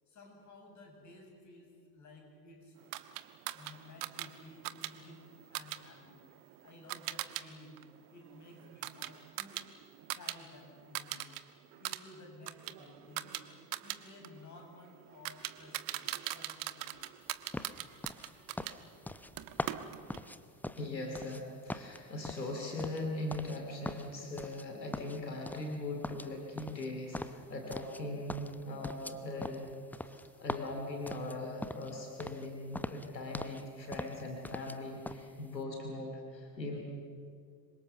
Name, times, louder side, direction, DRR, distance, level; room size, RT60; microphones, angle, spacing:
voice 1, 0.1-2.8 3.5-5.2 5.5-6.2 6.6-7.8 8.1-9.7 10.1-11.3 11.7-13.4 13.8-17.2, left 2 dB, 35° left, 1 dB, 7.6 m, -54 dB
sound 1, 2.9-7.4 7.8-10.4 10.7-11.4 11.7-18.8 19.4-20.3, right 15 dB, 45° right, 1.3 m, -41 dB
sound 2, 17.5-21.4 21.7-23.6 23.9-24.7 24.9-25.8 26.0-28.0 28.3-31.9 32.2-32.5 32.7-33.6 33.9-34.8 35.1-35.3, left 1 dB, 5° left, 0.8 m, -42 dB
voice 2, 20.8-29.7 30.0-30.1 30.4-36.8, left 2 dB, 85° left, 1 dB, 2.8 m, -40 dB
26.5 x 23.5 x 7.0 m, 2.4 s
figure-of-eight pair, 75°, 50 cm